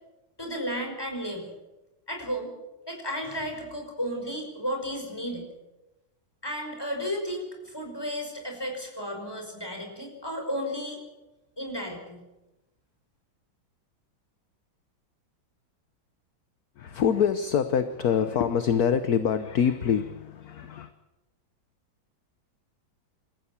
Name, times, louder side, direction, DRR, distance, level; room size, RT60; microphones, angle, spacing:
voice 1, 0.4-1.5 2.1-2.5 2.9-5.5 6.4-11.0 11.6-12.2, equal, 10° left, 2 dB, 5.4 m, -33 dB
voice 2, 16.8-20.9, left 7 dB, 55° left, 10 dB, 1.4 m, -25 dB
27.5 x 14.5 x 7.3 m, 1.0 s
omnidirectional pair, 2.2 m